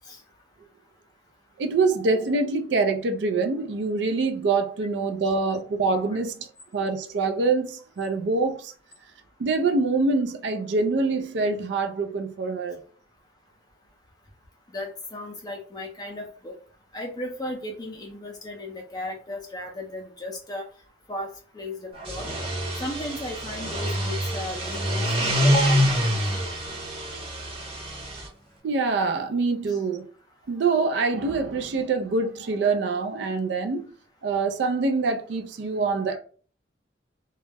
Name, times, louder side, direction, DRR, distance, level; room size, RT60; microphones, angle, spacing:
voice 1, 1.6-6.5 6.7-8.7 9.4-12.8 28.6-30.1 30.5-33.9 34.2-36.2, right 3 dB, 65° right, 0.4 m, -25 dB
voice 2, 14.7-16.5 16.9-20.7 21.1-21.3 21.5-22.3 22.8-26.2 29.7-29.8, left 1 dB, 20° left, 0.5 m, -35 dB
sound 1, 22.0-28.3, equal, 30° right, 0.8 m, -26 dB
2.2 x 2.0 x 3.3 m
head